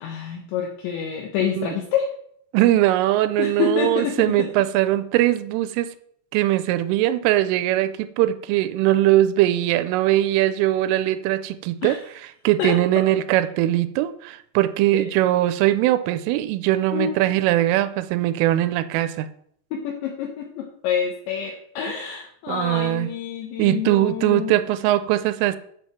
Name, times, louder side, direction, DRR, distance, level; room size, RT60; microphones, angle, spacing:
voice 1, 0.0-2.1 3.4-4.5 11.8-12.0 12.6-12.8 14.9-15.1 16.9-17.3 19.7-24.6, left 7 dB, 70° left, 1 dB, 3.2 m, -27 dB
voice 2, 2.5-5.9 6.3-12.0 12.4-19.3 22.5-23.1 23.6-25.6, right 14 dB, 85° right, 13 dB, 3.2 m, -21 dB
8.1 x 7.8 x 7.2 m, 0.67 s
omnidirectional pair, 5.7 m